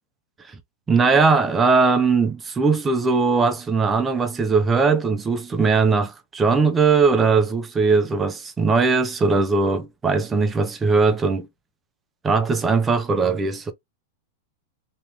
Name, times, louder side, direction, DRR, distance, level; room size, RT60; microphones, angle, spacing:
voice 1, 0.9-11.5 12.2-13.7, right 4 dB, 15° right, 0.6 m, -19 dB
3.0 x 2.9 x 3.4 m
supercardioid pair, 160°, 0 cm